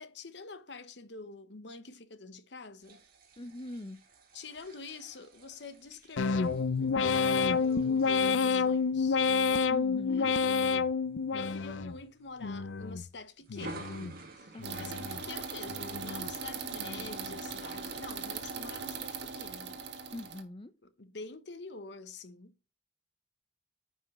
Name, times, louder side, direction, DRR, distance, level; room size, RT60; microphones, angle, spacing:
voice 1, 0.0-3.0 4.3-9.2 10.1-10.8 11.3-13.9 14.3-14.5 14.8-19.8 20.8-22.5, left 3 dB, 65° left, 0.9 m, -47 dB
sound 1, 2.8-10.7 11.1-11.4 11.7-12.9 13.4-18.3, right 2 dB, 50° right, 2.0 m, -52 dB
voice 2, 3.4-4.0 9.7-10.3 14.5-15.1 20.1-20.7, left 1 dB, 30° left, 0.5 m, -42 dB
sound 2, 6.2-12.0 12.4-13.1 13.5-14.2 14.6-15.2 15.7-16.3 16.8-17.3, left 5 dB, 85° left, 0.5 m, -29 dB
sound 3, 14.6-20.4, right 5 dB, 70° right, 1.5 m, -40 dB
9.6 x 5.6 x 3.1 m
head